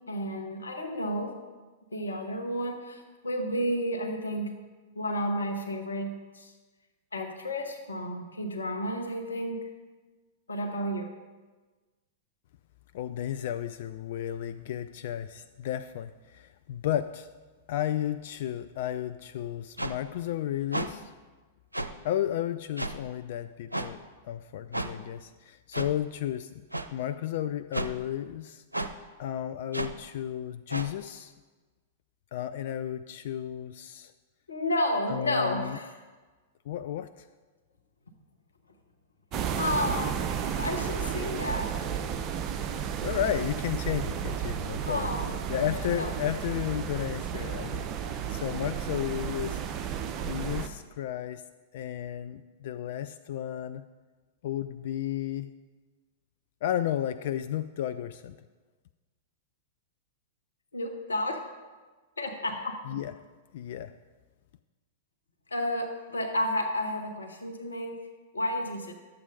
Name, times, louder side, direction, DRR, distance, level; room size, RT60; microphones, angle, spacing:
voice 1, 0.1-1.4 1.9-4.5 4.9-6.5 7.1-9.6 10.5-11.1 34.5-35.9 39.5-40.3 40.6-41.8 44.9-45.3 45.9-46.1 60.7-61.4 62.2-62.8 65.5-68.0 68.3-68.9, left 1 dB, 75° left, 4 dB, 1.1 m, -31 dB
voice 2, 12.9-17.3 17.7-21.1 22.0-26.5 26.9-28.6 29.2-31.3 32.3-34.1 35.1-35.8 36.7-37.3 43.0-45.1 45.5-49.6 50.2-51.4 51.7-53.8 54.4-55.5 56.6-58.4 62.9-63.1 63.5-64.0, left 11 dB, 50° left, 11 dB, 0.3 m, -33 dB
sound 1, 19.8-19.9 20.7-20.9 21.7-21.9 22.8-23.0 23.7-23.9 24.7-24.9 25.7-25.9 26.7-26.9 27.7-27.9 28.7-28.9 29.7-29.9 30.7-30.9, right 2 dB, 85° right, 0.5 m, -31 dB
sound 2, 39.3-50.7, right 8 dB, 30° right, 0.7 m, -33 dB
12.0 x 7.8 x 3.9 m, 1.3 s
figure-of-eight pair, 100°, 0 cm